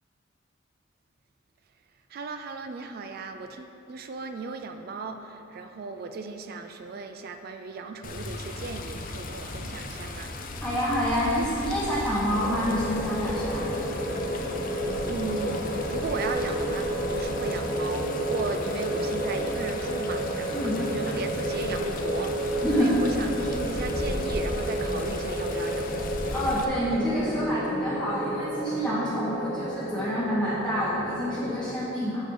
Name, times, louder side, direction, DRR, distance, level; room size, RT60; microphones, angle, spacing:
voice 1, 2.1-10.4 14.6-26.1, right 3 dB, 50° right, 7 dB, 0.4 m, -36 dB
Water, 8.0-26.6, left 2 dB, 45° left, 0.6 m, -37 dB
voice 2, 10.6-13.7 20.5-20.8 22.6-23.0 26.3-32.3, equal, 5° left, -10 dB, 0.9 m, -27 dB
sound 1, 12.3-31.7, right 1 dB, 70° left, 1.7 m, -31 dB
6.7 x 6.4 x 4.6 m, 2.9 s
head